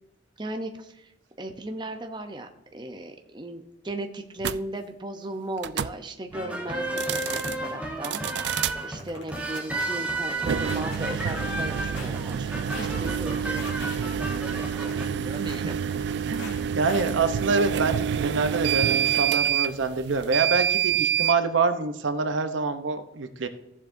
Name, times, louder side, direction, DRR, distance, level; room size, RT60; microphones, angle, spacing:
voice 1, 0.4-1.1 1.4-8.2 8.8-15.7, right 1 dB, 25° right, 5 dB, 0.7 m, -37 dB
sound 1, 4.4-4.6 5.6-6.0 6.9-7.6 8.0-8.8 10.4-21.4, right 9 dB, 65° right, 0.3 m, -27 dB
sound 2, 6.3-15.1, right 2 dB, 10° right, 1.1 m, -33 dB
sound 3, 8.1-8.2 8.6-8.7 9.0-9.8 10.2-11.0 11.3-12.1 12.5-12.9 13.3-14.0 14.4-15.6 15.9-16.6 16.9-17.0, left 2 dB, 80° left, 3.0 m, -41 dB
voice 2, 15.4-15.7 16.3-23.5, right 4 dB, 90° right, 8 dB, 0.8 m, -26 dB
15.0 x 7.3 x 2.7 m, 0.85 s
head